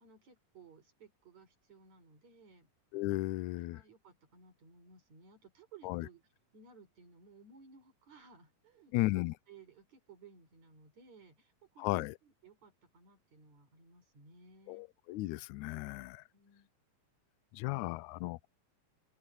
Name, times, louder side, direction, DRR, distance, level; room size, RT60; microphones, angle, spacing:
voice 1, 0.0-2.7 3.5-6.2 6.5-9.1 9.5-14.9 16.3-16.7, right 4 dB, 50° right, 6.4 m, -59 dB
voice 2, 2.9-3.8 5.8-6.1 8.9-9.3 11.8-12.1 14.7-16.2 17.5-18.5, left 19 dB, 90° left, 1.7 m, -35 dB
open air
omnidirectional pair, 4.0 m